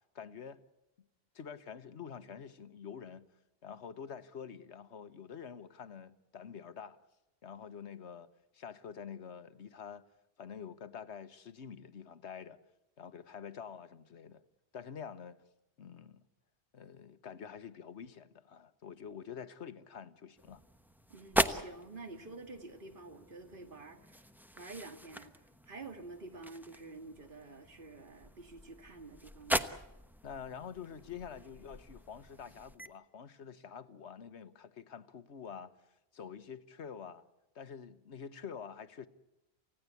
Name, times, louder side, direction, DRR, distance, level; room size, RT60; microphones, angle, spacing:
voice 1, 0.1-0.6 1.3-3.3 3.6-7.0 7.4-10.0 10.4-12.6 13.0-14.4 14.7-15.4 15.8-16.2 16.7-20.6 30.2-35.7 36.1-37.2 37.5-39.1, left 7 dB, 85° left, 1.4 m, -47 dB
sound 1, 20.4-32.9, equal, ahead, 1.0 m, -40 dB
voice 2, 21.1-24.3 24.6-25.3 25.7-29.7, right 3 dB, 50° right, 2.4 m, -49 dB
29.5 x 17.0 x 8.3 m
omnidirectional pair, 1.1 m